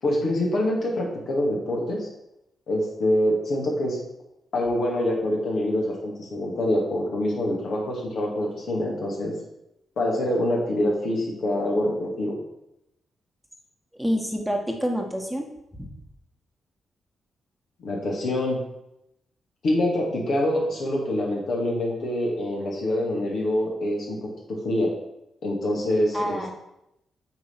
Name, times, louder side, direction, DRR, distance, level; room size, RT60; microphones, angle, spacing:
voice 1, 0.0-2.1 2.7-4.0 4.5-9.3 10.0-12.4 17.8-18.6 19.6-24.2 24.5-24.9 25.4-26.5, left 1 dB, 65° left, -2 dB, 2.3 m, -25 dB
voice 2, 14.0-15.5 15.8-15.9 26.1-26.5, equal, 5° right, 2 dB, 1.6 m, -27 dB
7.7 x 3.8 x 5.9 m, 0.85 s
hypercardioid pair, 45°, 0 cm